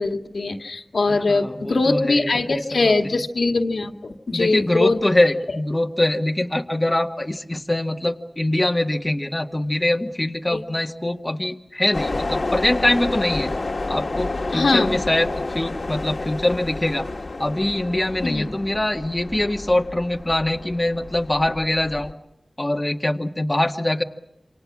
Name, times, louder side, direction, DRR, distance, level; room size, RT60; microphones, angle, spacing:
voice 1, 0.0-5.0 5.5-5.6 10.5-10.6 14.5-15.0 18.2-18.5, left 3 dB, 80° left, 4 dB, 2.2 m, -22 dB
voice 2, 1.1-3.1 4.3-13.5 13.9-17.1 17.4-22.2 22.6-24.0, left 1 dB, 20° left, 3 dB, 2.0 m, -23 dB
sound 1, 11.9-22.1, left 2 dB, 60° left, 1.9 m, -30 dB
28.0 x 27.0 x 6.2 m, 0.83 s
wide cardioid pair, 60°, 0 cm